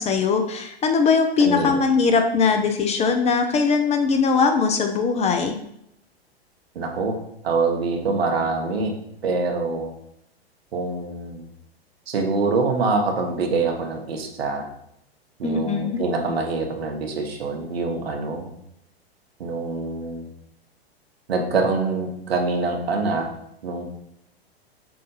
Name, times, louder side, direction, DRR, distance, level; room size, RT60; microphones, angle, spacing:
voice 1, 0.0-5.6 15.4-16.0, left 5 dB, 20° left, 5 dB, 0.6 m, -20 dB
voice 2, 1.4-1.8 6.7-7.2 7.4-8.9 9.2-9.9 10.7-11.5 12.1-14.7 15.4-18.5 19.4-20.3 21.3-23.3 23.6-23.8, right 3 dB, 70° right, 2 dB, 1.4 m, -25 dB
7.6 x 2.6 x 5.5 m, 0.75 s
figure-of-eight pair, 100°, 32 cm